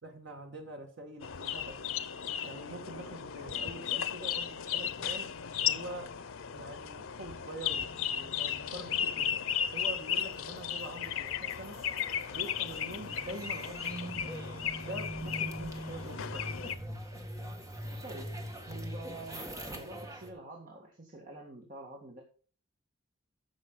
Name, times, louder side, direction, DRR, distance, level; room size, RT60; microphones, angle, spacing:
voice 1, 0.0-2.0 2.4-5.3 5.7-6.1 6.5-9.4 9.7-11.8 12.3-14.1 14.8-16.4, right 1 dB, 60° right, 3 dB, 1.9 m, -45 dB
sound 1, 1.2-16.7, left 8 dB, 85° left, 0.7 m, -35 dB
sound 2, 10.4-20.3, equal, 15° right, 1.8 m, -43 dB
voice 2, 18.0-18.4 18.7-22.2, right 2 dB, 40° right, 0 dB, 1.9 m, -47 dB
15.0 x 6.3 x 3.8 m, 0.40 s
head